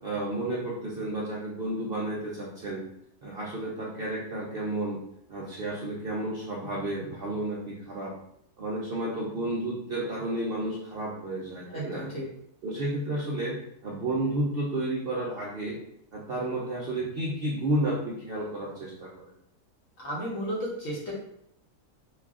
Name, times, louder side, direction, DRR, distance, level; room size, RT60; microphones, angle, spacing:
voice 1, 0.0-2.8 3.2-5.0 5.3-8.1 8.6-12.1 12.6-15.8 16.1-19.1, right 1 dB, 60° right, -5 dB, 0.6 m, -31 dB
voice 2, 11.7-12.2 20.0-21.1, equal, 60° left, -5 dB, 1.5 m, -33 dB
3.2 x 2.3 x 3.6 m, 0.74 s
omnidirectional pair, 1.6 m